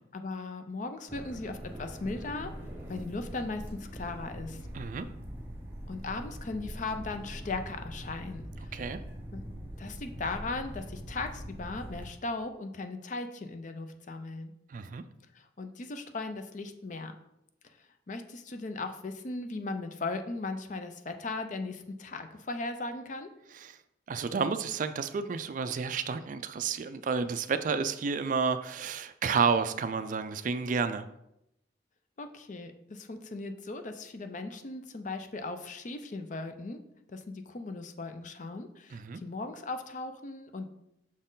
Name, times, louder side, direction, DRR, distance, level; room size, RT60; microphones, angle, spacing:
voice 1, 0.1-2.5 2.9-4.6 5.9-8.7 9.3-9.4 9.8-14.5 15.3-17.1 18.1-23.3 32.2-36.8 37.1-40.7, left 3 dB, 40° left, 7 dB, 0.5 m, -38 dB
sound 1, 1.1-12.1, equal, 10° right, 1.1 m, -42 dB
voice 2, 4.7-5.1 8.7-9.0 14.7-15.0 23.5-23.8 24.1-31.1 38.9-39.2, right 5 dB, 45° right, 11 dB, 0.3 m, -31 dB
6.1 x 4.2 x 3.8 m, 0.83 s
head